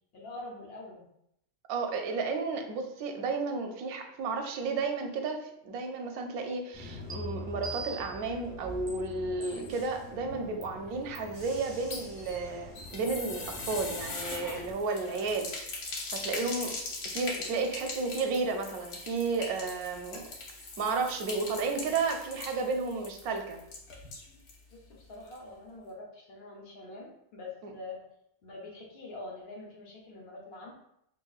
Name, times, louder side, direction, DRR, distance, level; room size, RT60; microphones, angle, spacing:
voice 1, 0.1-1.0 24.7-28.0 28.4-30.8, left 2 dB, 55° left, -1 dB, 0.8 m, -45 dB
voice 2, 1.7-15.7 16.1-16.8 17.1-20.3 20.8-23.6, right 4 dB, 90° right, 4 dB, 1.1 m, -32 dB
Bus / Engine, 6.7-14.7, left 1 dB, 30° right, 1.3 m, -45 dB
sound 1, 7.1-7.2 7.6-8.2 8.9-9.0 9.4-9.9 10.6-10.7 11.1-11.4, right 4 dB, 45° right, 1.0 m, -42 dB
sound 2, 11.7-24.6 24.9-25.0 25.3-25.4, left 3 dB, 90° left, 1.4 m, -41 dB
5.7 x 2.4 x 2.3 m, 0.76 s
omnidirectional pair, 1.5 m